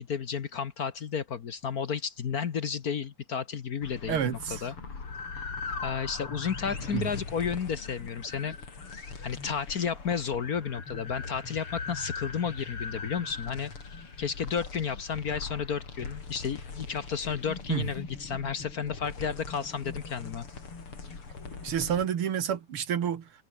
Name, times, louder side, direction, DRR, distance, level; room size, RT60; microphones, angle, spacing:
voice 1, 0.0-4.7 5.8-8.6 8.9-13.7 14.2-20.4, left 7 dB, 50° left, 1.4 m, -32 dB
sound 1, 3.8-22.1, left 4 dB, 85° left, 5.0 m, -40 dB
voice 2, 4.1-4.6 6.9-7.1 17.7-17.8 21.6-23.3, right 8 dB, 75° right, 2.5 m, -29 dB
omnidirectional pair, 2.4 m